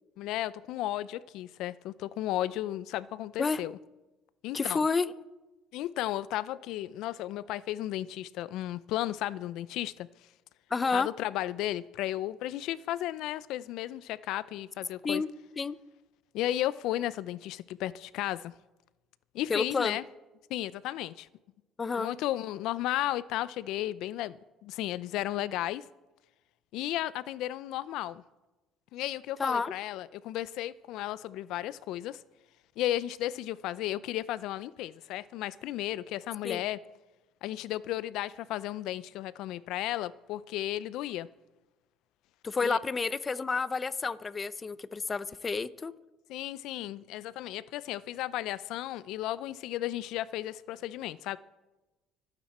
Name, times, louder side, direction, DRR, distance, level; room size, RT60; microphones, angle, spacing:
voice 1, 0.2-3.8 4.4-4.8 5.7-10.1 10.9-15.2 16.3-18.5 19.3-20.0 20.5-21.3 22.0-25.8 26.7-28.2 28.9-32.2 32.8-36.8 37.4-41.3 42.6-42.8 46.3-51.4, left 14 dB, 75° left, 0.5 m, -34 dB
voice 2, 4.5-5.1 10.7-11.1 15.0-15.3 15.6-15.8 19.5-20.0 21.8-22.1 29.4-29.7 36.4-36.6 42.4-45.9, left 4 dB, 30° left, 0.7 m, -30 dB
25.5 x 9.0 x 4.3 m
cardioid pair, 95°, 0 cm